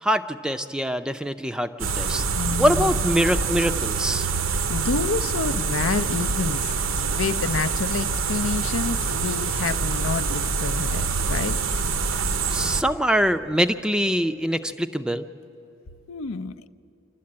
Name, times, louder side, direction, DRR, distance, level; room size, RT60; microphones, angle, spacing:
voice 1, 0.0-2.2 2.6-4.3 12.5-15.3, equal, 5° right, 9 dB, 0.4 m, -24 dB
sound 1, 1.8-12.8, right 5 dB, 70° right, 0.8 m, -25 dB
voice 2, 2.3-3.0 4.7-11.6 16.1-16.7, left 4 dB, 80° left, 12 dB, 0.5 m, -28 dB
27.5 x 12.0 x 8.6 m, 2.9 s
head